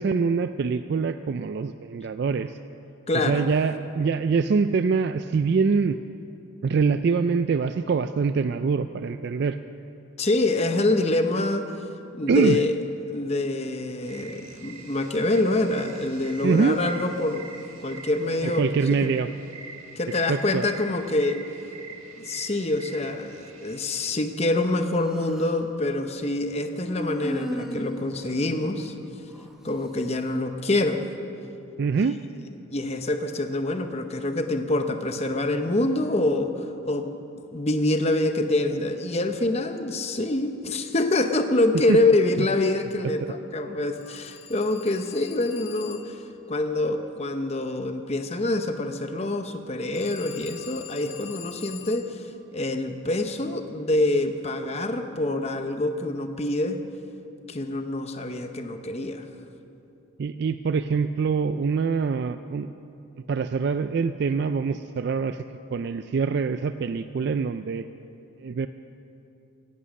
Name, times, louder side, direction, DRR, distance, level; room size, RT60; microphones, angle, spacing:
voice 1, 0.0-2.6 3.1-6.0 6.6-9.6 12.3-12.6 16.4-16.8 18.4-19.3 20.3-20.6 31.8-32.2 41.9-42.0 42.4-42.5 60.2-62.7 63.3-65.4 65.7-67.9 68.4-68.7, right 5 dB, 50° right, 10 dB, 0.3 m, -24 dB
voice 2, 3.1-3.5 10.2-11.7 12.1-12.8 13.1-17.4 17.8-18.6 19.0-19.1 20.0-21.4 22.2-28.9 29.6-31.0 32.7-37.1 37.5-46.2 46.5-52.2 52.5-56.8 57.5-59.2, left 2 dB, 30° left, 7 dB, 0.8 m, -25 dB
sound 1, 14.0-24.1, right 5 dB, 80° right, 1.7 m, -44 dB
Human voice, 24.7-25.7 26.8-29.5, equal, ahead, 1.0 m, -36 dB
Telephone, 44.0-46.3 50.0-52.2, left 9 dB, 70° left, 1.1 m, -44 dB
17.0 x 11.0 x 6.4 m, 2.7 s
head